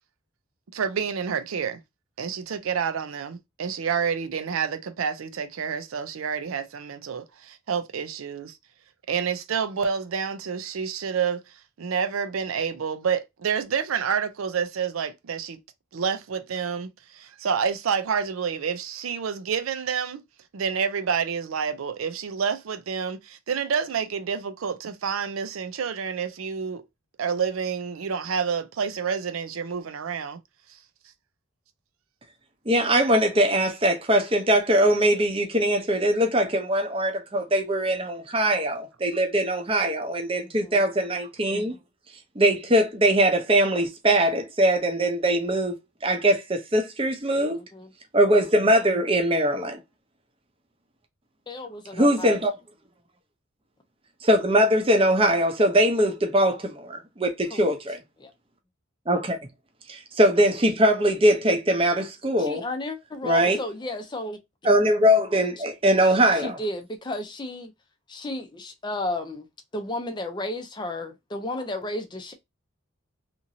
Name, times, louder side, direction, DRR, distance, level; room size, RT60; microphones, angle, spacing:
voice 1, 0.7-1.8 2.2-8.5 9.1-11.4 11.8-15.6 15.9-20.2 20.5-26.8 27.2-30.4, right 6 dB, 85° right, 0.5 m, -28 dB
voice 2, 32.7-41.8 42.4-45.8 46.0-47.6 48.1-49.8 51.9-52.5 54.2-58.0 59.1-59.4 59.9-62.6 63.2-63.6 64.6-66.6, right 1 dB, 25° right, 0.6 m, -21 dB
voice 3, 40.4-40.8 47.3-47.9 51.5-52.4 57.5-57.7 58.2-58.3 62.4-64.4 65.6-65.7 66.0-67.7 68.1-69.5 69.7-72.3, left 1 dB, 20° left, 0.4 m, -33 dB
2.9 x 2.6 x 2.6 m
head